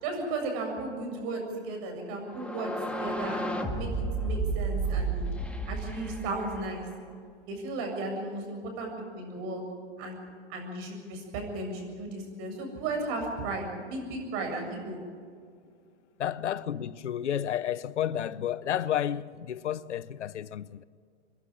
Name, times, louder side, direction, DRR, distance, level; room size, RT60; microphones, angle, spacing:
voice 1, 0.0-5.3 5.7-6.9 7.5-9.6 10.0-10.2 10.5-15.0, right 2 dB, 40° right, 7.5 m, -35 dB
sound 1, 2.3-7.1, right 3 dB, 5° left, 1.7 m, -32 dB
voice 2, 16.2-20.8, left 10 dB, 80° left, 0.8 m, -31 dB
28.0 x 11.5 x 9.9 m
hypercardioid pair, 125°, 34 cm